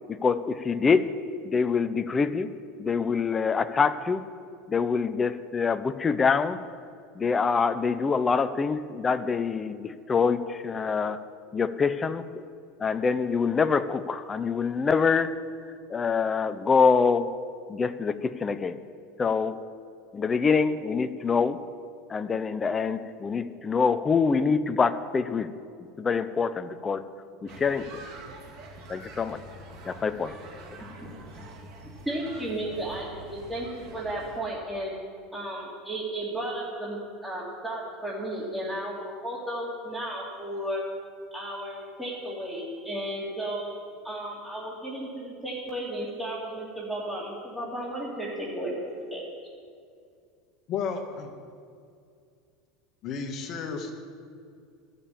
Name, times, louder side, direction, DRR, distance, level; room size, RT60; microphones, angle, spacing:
voice 1, 0.1-1.2 1.4-2.5 2.8-4.2 4.7-6.6 7.2-11.2 11.5-12.2 12.8-15.4 15.9-17.3 17.7-18.8 19.2-19.6 20.1-21.6 22.1-25.5 26.0-27.0 27.4-27.9 28.9-29.4 29.8-30.3, left 5 dB, 25° left, 11 dB, 0.6 m, -25 dB
sound 1, 27.5-34.4, right 2 dB, 60° right, 2.2 m, -45 dB
voice 2, 31.0-31.5 32.0-34.9 35.3-40.8 41.3-43.7 44.0-48.7 49.1-49.2, right 1 dB, 10° right, -8 dB, 2.8 m, -34 dB
voice 3, 50.7-51.3 53.0-53.9, left 6 dB, 50° left, 4 dB, 1.8 m, -32 dB
13.5 x 6.9 x 8.8 m, 2.3 s
supercardioid pair, 105°, 0 cm